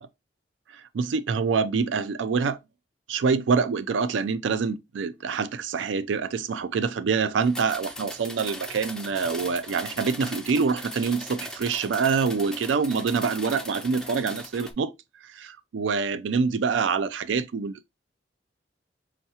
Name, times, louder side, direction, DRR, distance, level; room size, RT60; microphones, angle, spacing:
voice 1, 0.7-2.6 3.1-14.9 15.2-17.9, right 5 dB, 90° right, 0.4 m, -26 dB
sound 1, 7.4-14.7, left 1 dB, 5° left, 0.3 m, -39 dB
5.4 x 2.1 x 2.8 m
head